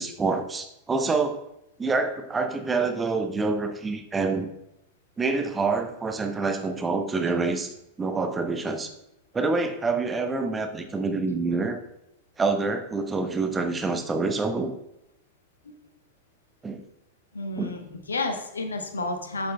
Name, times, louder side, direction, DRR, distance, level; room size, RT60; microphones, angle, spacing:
voice 1, 0.0-1.4 1.8-4.5 5.2-8.9 9.3-11.8 12.4-14.7 16.6-16.8 17.6-17.7, right 3 dB, 15° right, 6 dB, 0.8 m, -27 dB
voice 2, 17.3-19.5, left 2 dB, 75° left, 5 dB, 0.9 m, -31 dB
8.8 x 7.6 x 2.2 m, 0.84 s
figure-of-eight pair, 90°, 0 cm